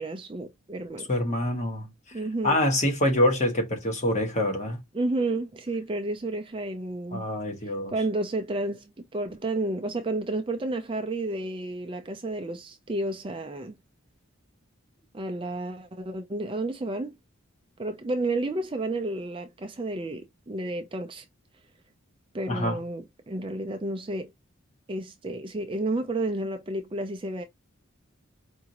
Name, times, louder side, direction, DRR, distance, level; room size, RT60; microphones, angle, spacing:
voice 1, 0.0-1.1 2.1-2.6 4.9-7.3 7.6-13.8 15.1-17.2 17.8-21.2 22.3-24.3 24.9-27.4, right 2 dB, 25° right, 0.4 m, -31 dB
voice 2, 1.1-1.9 2.4-4.8 7.1-7.9 22.5-22.8, left 1 dB, 35° left, 1.3 m, -25 dB
4.7 x 2.6 x 2.9 m
head